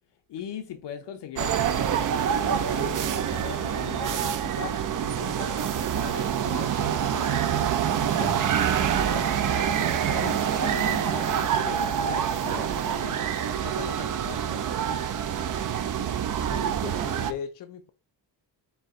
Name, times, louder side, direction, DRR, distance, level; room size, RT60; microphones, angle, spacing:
voice 1, 0.3-8.4 8.9-13.2 13.5-14.8, left 8 dB, 70° left, 0.9 m, -40 dB
sound 1, 1.4-17.3, right 9 dB, 45° right, 0.5 m, -26 dB
sound 2, 5.7-7.8 8.2-10.0, right 2 dB, 70° right, 1.8 m, -42 dB
voice 2, 16.3-17.9, left 8 dB, 50° left, 0.4 m, -38 dB
4.5 x 2.6 x 3.6 m
cardioid pair, 115°, 43 cm